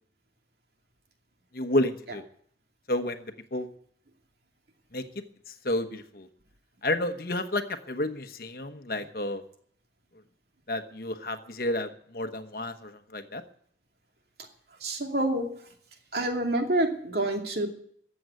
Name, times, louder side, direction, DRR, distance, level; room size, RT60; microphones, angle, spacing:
voice 1, 1.5-2.2 2.9-3.2 3.5-3.7 4.9-5.0 5.5-6.3 6.8-9.4 10.7-13.4, left 1 dB, 55° left, 8 dB, 1.2 m, -30 dB
voice 2, 14.8-15.5 16.1-17.7, right 1 dB, 60° right, 2 dB, 2.6 m, -27 dB
14.5 x 7.8 x 9.5 m, 0.62 s
head